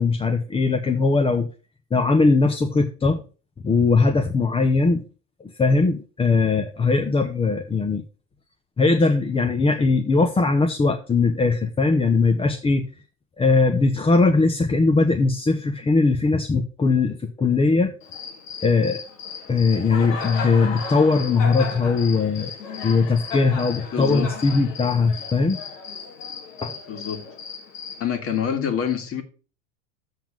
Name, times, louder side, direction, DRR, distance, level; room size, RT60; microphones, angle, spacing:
voice 1, 0.0-1.5 1.9-3.2 3.6-5.0 5.4-8.0 8.8-12.9 13.4-17.9 18.6-19.0 19.5-22.5 22.8-25.6 26.6-26.7, left 3 dB, 15° left, 0.8 m, -20 dB
Cricket, 18.0-28.0, left 5 dB, 90° left, 2.5 m, -35 dB
voice 2, 23.9-24.3 26.9-27.2 28.0-29.2, left 8 dB, 35° left, 2.0 m, -26 dB
7.4 x 5.7 x 7.4 m
supercardioid pair, 120°, 38 cm